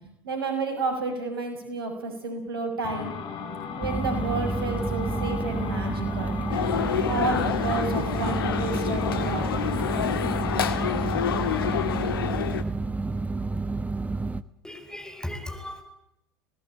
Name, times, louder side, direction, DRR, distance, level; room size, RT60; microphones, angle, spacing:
voice 1, 0.2-3.1 3.8-6.4 6.9-9.6, right 3 dB, 75° right, 6 dB, 6.7 m, -31 dB
sound 1, 2.8-12.1, left 6 dB, 45° left, 4.5 m, -36 dB
sound 2, 3.8-14.4, right 3 dB, 10° right, 1.1 m, -30 dB
sound 3, 6.5-12.6, left 8 dB, 75° left, 1.7 m, -28 dB
voice 2, 14.6-15.8, left 1 dB, 5° left, 7 dB, 4.9 m, -36 dB
24.5 x 19.0 x 9.1 m, 0.83 s
figure-of-eight pair, 75°, 12 cm